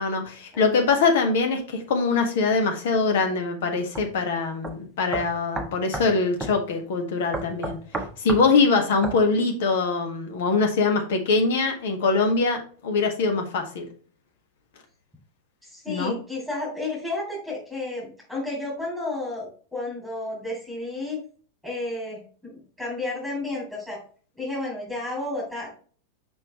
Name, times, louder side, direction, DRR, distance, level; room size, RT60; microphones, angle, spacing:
voice 1, 0.0-7.8 8.2-13.9 15.9-16.2, left 4 dB, 55° left, 4 dB, 1.4 m, -23 dB
sound 1, 3.9-4.1 4.6-4.7 5.1-6.1 6.4-6.6 7.3-8.5 9.0-9.2, right 2 dB, 10° right, 1.0 m, -31 dB
voice 2, 15.6-21.2 21.6-24.0 24.4-25.7, left 2 dB, 5° left, -6 dB, 3.0 m, -32 dB
5.7 x 5.4 x 3.1 m, 0.42 s
figure-of-eight pair, 90°, 0 cm